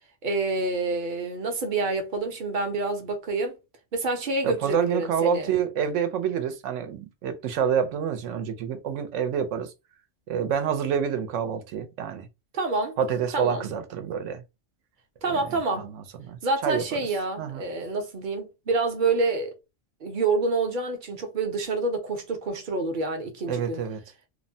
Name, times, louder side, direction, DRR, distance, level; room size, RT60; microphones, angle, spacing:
voice 1, 0.2-3.6 3.9-5.5 12.5-13.0 13.3-13.7 15.2-15.9 16.4-19.5 20.0-23.8, right 3 dB, 50° right, 0.7 m, -27 dB
voice 2, 4.4-9.7 10.3-12.3 13.0-14.4 15.3-16.8 17.4-17.6 23.5-24.0, right 7 dB, 80° right, 0.9 m, -28 dB
2.9 x 2.0 x 2.6 m
omnidirectional pair, 1.3 m